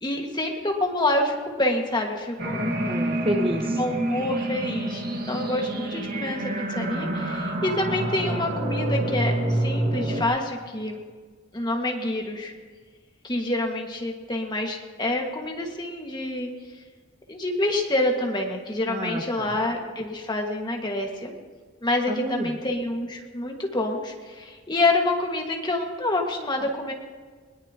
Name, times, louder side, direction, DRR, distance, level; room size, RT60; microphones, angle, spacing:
voice 1, 0.0-2.6 3.7-11.0 11.5-12.5 13.2-16.5 17.3-21.3 21.8-26.9, left 2 dB, 25° left, 1 dB, 1.8 m, -27 dB
sound 1, 2.4-10.2, right 1 dB, 50° right, 1.8 m, -27 dB
voice 2, 2.6-3.8 18.9-19.5 22.1-22.5, equal, 30° right, 4 dB, 1.1 m, -29 dB
21.0 x 20.5 x 3.0 m, 1.5 s
head